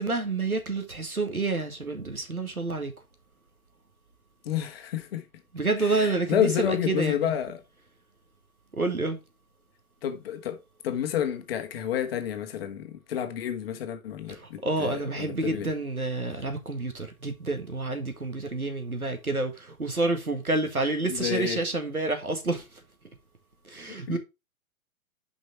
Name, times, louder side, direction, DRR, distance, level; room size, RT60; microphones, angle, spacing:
voice 1, 0.0-2.9 5.5-7.3 8.7-9.2 14.3-22.8 23.7-24.2, right 2 dB, 90° right, 1.8 m, -29 dB
voice 2, 4.4-5.2 5.8-7.6 10.0-10.6 10.8-15.7 21.1-21.6 23.9-24.2, left 9 dB, 45° left, 1.4 m, -30 dB
6.2 x 5.4 x 4.5 m
figure-of-eight pair, 120°, 42 cm